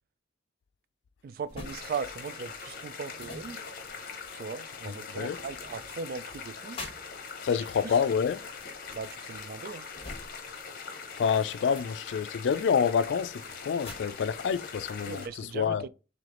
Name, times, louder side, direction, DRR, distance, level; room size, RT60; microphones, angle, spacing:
voice 1, 1.2-3.6 4.3-6.8 7.8-8.0 8.9-9.9 15.1-15.9, right 5 dB, 55° right, 0.3 m, -38 dB
sound 1, 1.4-10.8 11.1-15.1, left 2 dB, 30° left, 1.1 m, -49 dB
sound 2, 1.6-15.3, left 5 dB, 55° left, 0.8 m, -42 dB
voice 2, 4.9-5.4 7.4-8.4 11.2-15.9, left 6 dB, 80° left, 0.3 m, -28 dB
3.3 x 3.2 x 3.7 m
head